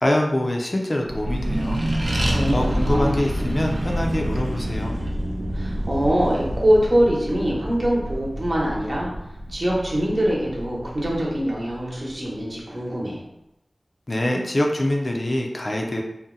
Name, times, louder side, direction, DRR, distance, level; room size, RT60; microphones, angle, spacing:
voice 1, 0.0-1.8 2.5-5.0 14.1-16.0, left 1 dB, 40° left, 1 dB, 0.4 m, -24 dB
Accelerating revving vroom, 1.0-12.0, equal, 70° right, 0.4 m, -27 dB
voice 2, 2.2-3.2 5.5-9.1 9.5-13.2, equal, 50° right, -4 dB, 0.9 m, -23 dB
2.7 x 2.0 x 3.7 m, 0.85 s
wide cardioid pair, 75°, 0 cm